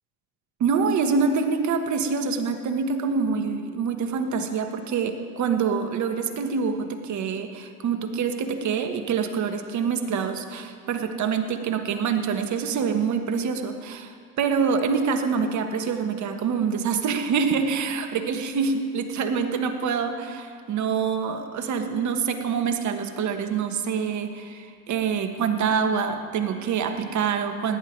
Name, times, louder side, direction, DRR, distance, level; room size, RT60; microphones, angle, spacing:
voice 1, 0.6-27.8, right 6 dB, 40° right, 6 dB, 1.5 m, -26 dB
17.0 x 10.5 x 4.7 m, 2.1 s
hypercardioid pair, 90°, 44 cm